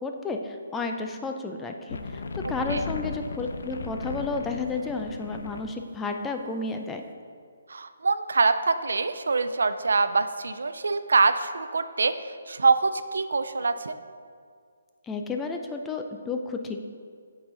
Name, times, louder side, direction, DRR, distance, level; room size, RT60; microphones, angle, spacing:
voice 1, 0.0-7.0 15.0-16.8, left 3 dB, 10° left, 4 dB, 0.4 m, -32 dB
sound 1, 1.9-5.8, left 3 dB, 70° left, 0.4 m, -35 dB
voice 2, 7.7-12.1 12.5-13.9, right 4 dB, 75° right, 11 dB, 0.3 m, -24 dB
7.6 x 4.0 x 3.9 m, 2.1 s
hypercardioid pair, 150°, 0 cm